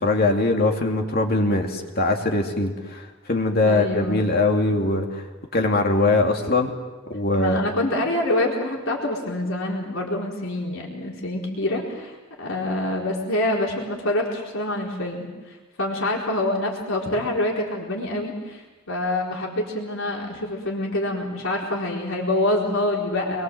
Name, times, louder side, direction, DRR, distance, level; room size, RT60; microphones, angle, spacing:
voice 1, 0.0-5.2 5.5-6.7 7.1-7.7, left 2 dB, 45° left, 2 dB, 2.6 m, -22 dB
voice 2, 3.6-4.3 7.4-23.4, left 1 dB, 65° left, -2 dB, 4.4 m, -26 dB
27.5 x 22.5 x 7.8 m, 1.2 s
head